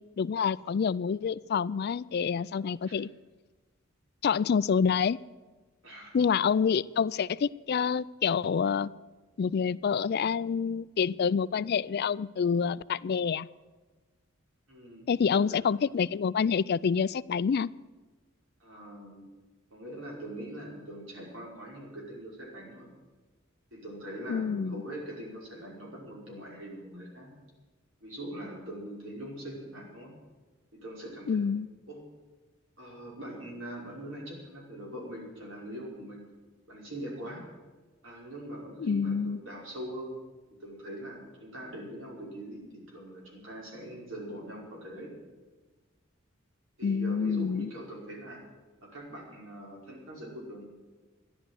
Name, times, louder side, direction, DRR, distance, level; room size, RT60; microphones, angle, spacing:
voice 1, 0.0-3.1 4.2-5.2 6.1-8.9 9.4-13.5 15.1-17.7 24.3-24.8 31.3-31.7 38.8-39.4 46.8-47.7, left 6 dB, 50° left, 19 dB, 0.3 m, -27 dB
voice 2, 14.7-15.4 18.6-19.3 19.7-22.9 23.7-27.3 28.0-30.1 30.7-31.4 31.9-32.0 32.8-36.2 36.7-37.5 38.0-40.2 40.6-45.1 46.8-48.5 48.8-50.7, right 1 dB, 70° right, -2 dB, 5.5 m, -42 dB
14.0 x 11.0 x 7.8 m, 1.3 s
head